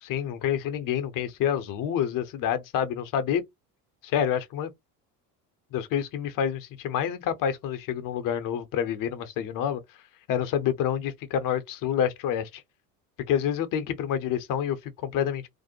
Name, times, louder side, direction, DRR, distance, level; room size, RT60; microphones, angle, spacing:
voice 1, 0.0-3.4 4.0-4.7 5.7-9.8 10.3-12.6 13.3-15.5, left 9 dB, 45° left, 0.7 m, -28 dB
2.6 x 2.0 x 2.7 m
hypercardioid pair, 70°, 46 cm